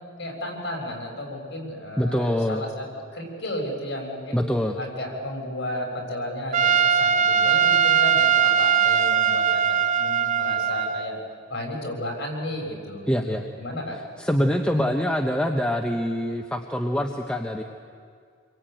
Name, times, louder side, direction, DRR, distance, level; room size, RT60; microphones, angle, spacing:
voice 1, 0.2-2.9 3.1-4.4 4.8-11.2 11.5-13.9, left 1 dB, 60° left, 1 dB, 6.7 m, -33 dB
voice 2, 2.0-2.6 4.3-4.8 13.1-13.5 14.2-17.6, equal, 5° left, 2 dB, 1.2 m, -24 dB
Trumpet, 6.5-11.1, right 7 dB, 40° right, 0.6 m, -20 dB
27.5 x 23.0 x 9.3 m, 2.2 s
head